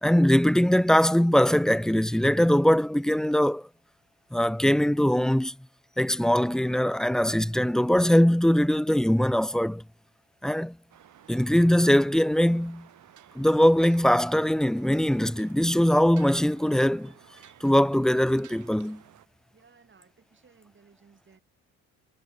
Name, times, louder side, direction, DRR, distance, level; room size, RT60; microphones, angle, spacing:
voice 1, 0.0-3.7 4.3-5.5 6.0-9.8 10.4-10.8 11.3-12.9 13.4-17.1 17.6-19.0, equal, ahead, 0.5 m, -22 dB
sound 1, 10.9-19.3, right 11 dB, 60° right, 3.2 m, -54 dB
voice 2, 19.5-21.4, right 5 dB, 35° right, 7.4 m, -59 dB
supercardioid pair, 70°, 33 cm